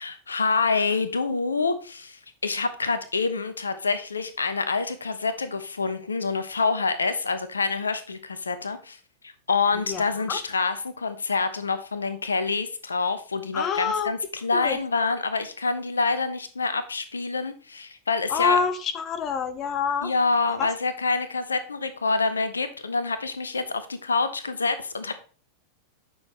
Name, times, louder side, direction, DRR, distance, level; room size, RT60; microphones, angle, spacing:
voice 1, 0.0-9.0 9.2-18.6 20.0-25.1, left 4 dB, 75° left, 11 dB, 0.8 m, -27 dB
voice 2, 13.5-14.1 14.5-14.8 18.3-20.1 20.6-20.7, left 6 dB, 30° left, 9 dB, 0.7 m, -26 dB
8.8 x 6.2 x 3.2 m, 0.38 s
figure-of-eight pair, 90°, 0 cm